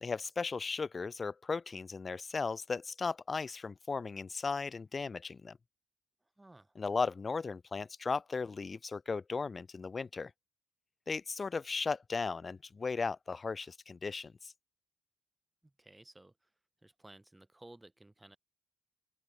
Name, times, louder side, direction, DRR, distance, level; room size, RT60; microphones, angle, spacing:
voice 1, 0.0-5.6 6.8-10.3 11.1-14.5, left 4 dB, 35° left, 2.4 m, -36 dB
voice 2, 6.4-6.7 15.6-16.3 16.8-18.4, right 1 dB, 15° right, 5.0 m, -56 dB
open air
supercardioid pair, 65°, 0 cm